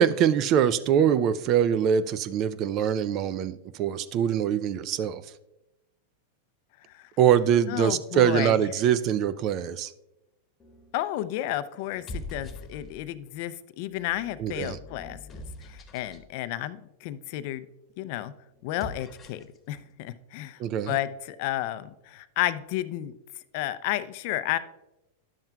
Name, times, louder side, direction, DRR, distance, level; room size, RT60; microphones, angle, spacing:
voice 1, 0.0-5.2 7.2-9.9 14.4-14.8 20.6-21.0, right 9 dB, 40° right, 15 dB, 0.4 m, -23 dB
voice 2, 7.7-8.7 10.9-17.7 18.0-18.3 18.6-20.6 20.9-23.1 23.5-24.6, left 14 dB, 55° left, 13 dB, 0.4 m, -32 dB
sound 1, 10.6-11.0 11.8-13.2 13.9-16.3 18.6-19.6, left 1 dB, 20° left, 1.2 m, -43 dB
10.5 x 7.4 x 2.3 m, 0.93 s
hypercardioid pair, 125°, 0 cm